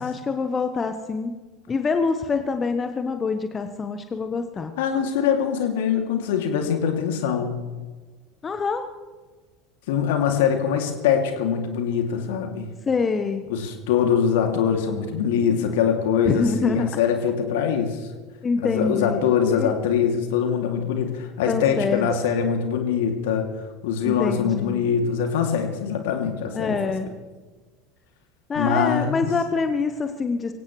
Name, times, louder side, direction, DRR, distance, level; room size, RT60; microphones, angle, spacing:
voice 1, 0.0-1.4 1.7-4.7 8.4-8.9 12.9-13.5 16.2-16.9 18.4-19.7 21.5-22.1 24.0-24.9 26.5-27.1 28.5-30.5, left 4 dB, 25° left, 8 dB, 1.1 m, -25 dB
voice 2, 4.8-7.5 9.9-12.7 13.5-18.0 18.6-23.5 23.8-27.1 28.5-29.3, left 7 dB, 65° left, 4 dB, 2.6 m, -23 dB
23.5 x 17.0 x 3.2 m, 1.4 s
figure-of-eight pair, 75°, 0 cm